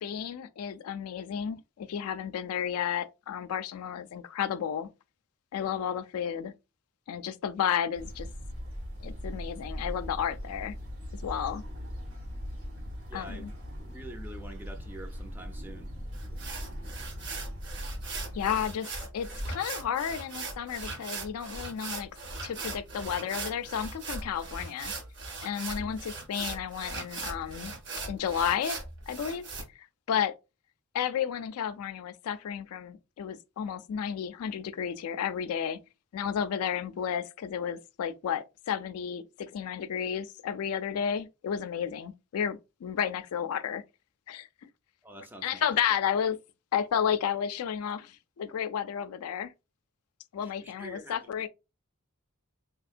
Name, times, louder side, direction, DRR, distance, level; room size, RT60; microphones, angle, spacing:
voice 1, 0.0-4.9 5.5-6.5 7.1-8.3 9.0-10.7 11.2-11.6 13.1-13.5 18.3-22.1 22.4-24.9 25.4-27.7 28.0-28.8 29.1-29.5 29.8-30.4 30.9-35.8 36.1-43.8 44.3-44.7 45.4-46.4 46.7-49.5 50.3-51.5, left 8 dB, 85° left, 0.3 m, -32 dB
sound 1, 8.0-18.7, equal, 70° right, 1.2 m, -40 dB
voice 2, 13.1-13.5 13.9-15.9 25.7-26.0 45.0-45.7 50.4-51.2, right 1 dB, 10° right, 0.4 m, -46 dB
sound 2, 16.1-29.6, right 3 dB, 55° right, 0.8 m, -39 dB
3.6 x 2.8 x 2.4 m
head